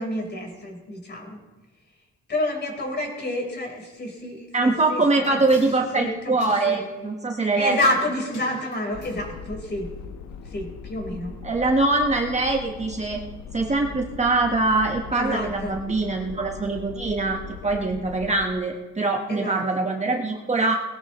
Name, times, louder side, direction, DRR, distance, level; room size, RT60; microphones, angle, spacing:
voice 1, 0.0-1.4 2.3-5.0 5.3-5.7 6.0-6.8 7.5-9.9 10.4-11.3 15.1-15.8 19.3-19.8, left 1 dB, 35° left, 1 dB, 4.3 m, -29 dB
voice 2, 4.5-7.8 11.4-13.2 13.5-20.8, right 3 dB, 25° right, 1 dB, 1.3 m, -23 dB
sound 1, 4.8-6.9 8.3-9.7 10.0-10.1, left 3 dB, 60° left, 5.1 m, -46 dB
sound 2, 8.9-18.5, left 6 dB, 80° left, 1.3 m, -40 dB
19.5 x 17.5 x 3.1 m, 1.2 s
cardioid pair, 125°, 29 cm